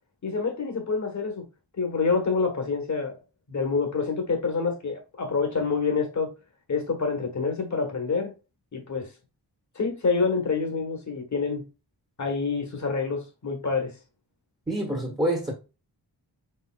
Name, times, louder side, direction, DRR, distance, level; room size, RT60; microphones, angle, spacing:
voice 1, 0.2-1.4 1.8-3.2 3.5-6.3 6.7-8.3 8.7-9.1 9.7-11.6 12.2-13.9, left 4 dB, 40° left, 1.3 m, -27 dB
voice 2, 14.7-15.5, right 1 dB, 10° right, 1.2 m, -26 dB
4.8 x 4.4 x 2.3 m
wide cardioid pair, 150°, 42 cm